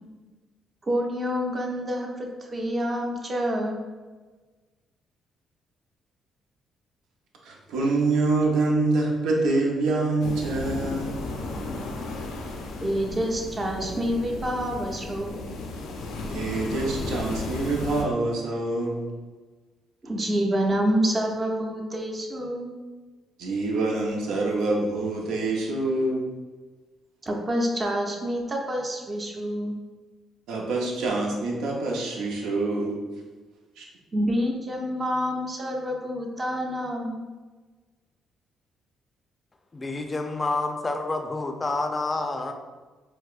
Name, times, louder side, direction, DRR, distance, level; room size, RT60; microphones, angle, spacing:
voice 1, 0.8-3.8 12.8-15.5 20.0-22.7 27.2-29.7 34.1-37.2, equal, 30° right, 0 dB, 0.6 m, -27 dB
voice 2, 7.4-11.2 16.3-19.1 23.4-26.3 30.5-33.0 33.8-33.9, right 2 dB, 90° right, -1 dB, 0.6 m, -26 dB
sound 1, 10.2-18.0, left 2 dB, 85° left, 0.4 m, -34 dB
voice 3, 39.7-42.5, left 3 dB, 25° left, 5 dB, 0.4 m, -28 dB
4.6 x 2.0 x 2.4 m, 1.3 s
cardioid pair, 90°, 0 cm